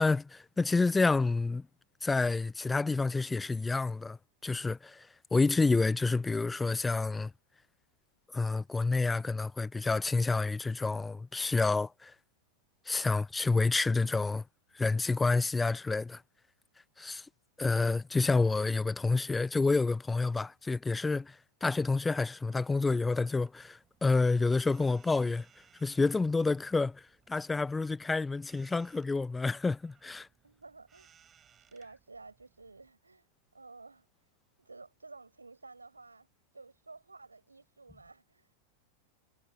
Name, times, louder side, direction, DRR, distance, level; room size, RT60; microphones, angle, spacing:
voice 1, 0.0-1.6 2.0-4.2 4.4-7.3 8.3-12.1 12.9-14.4 14.7-16.2 17.0-17.3 17.6-25.5 25.8-30.3, left 3 dB, 10° left, 0.5 m, -29 dB
sound 1, 22.4-32.9, right 8 dB, 25° right, 6.4 m, -66 dB
voice 2, 30.4-31.1 31.6-33.3 33.5-34.1 34.6-36.3 36.5-38.6, right 3 dB, 80° right, 5.6 m, -52 dB
figure-of-eight pair, 90°, 0 cm